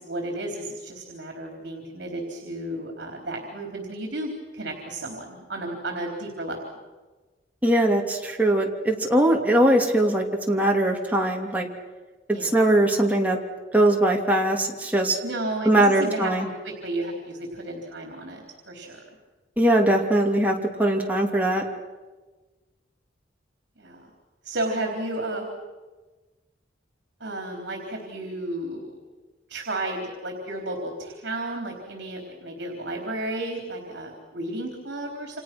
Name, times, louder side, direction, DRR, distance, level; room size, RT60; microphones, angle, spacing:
voice 1, 0.0-6.7 12.3-12.6 15.2-19.0 23.8-24.1 24.4-25.5 27.2-29.0 29.5-35.4, right 1 dB, 65° right, 2 dB, 3.9 m, -33 dB
voice 2, 7.6-11.7 12.4-13.4 13.7-15.2 15.6-16.5 19.6-21.6, right 1 dB, 10° right, 0 dB, 2.8 m, -21 dB
29.0 x 27.0 x 6.2 m, 1.3 s
head